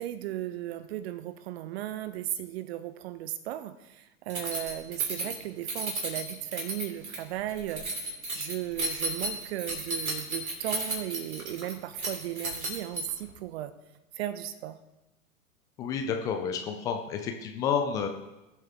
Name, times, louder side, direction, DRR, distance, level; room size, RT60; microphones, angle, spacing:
voice 1, 0.0-13.7 14.2-14.8, right 13 dB, 45° right, 12 dB, 1.1 m, -36 dB
Keys jangling, 4.3-13.3, right 2 dB, 80° right, 3.1 m, -34 dB
voice 2, 15.8-18.1, left 7 dB, 10° left, 4 dB, 0.3 m, -30 dB
20.0 x 7.5 x 3.6 m, 1.0 s
figure-of-eight pair, 105°, 42 cm